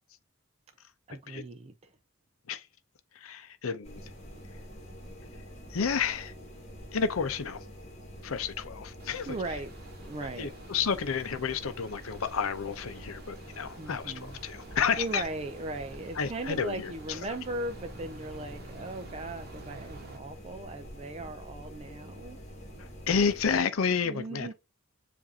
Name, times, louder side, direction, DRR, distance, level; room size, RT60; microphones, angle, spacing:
voice 1, 1.1-1.9 9.3-9.7 10.1-10.5 13.8-14.4 15.0-22.4 24.0-24.5, right 2 dB, 30° right, 0.4 m, -38 dB
voice 2, 3.1-4.0 5.7-6.3 6.9-7.6 8.2-9.4 10.4-15.2 16.2-17.2 22.8-24.5, left 6 dB, 75° left, 0.6 m, -31 dB
sound 1, 3.8-23.6, equal, 30° left, 1.6 m, -46 dB
sound 2, 9.0-20.2, right 2 dB, 50° right, 0.9 m, -50 dB
7.2 x 2.6 x 2.7 m
head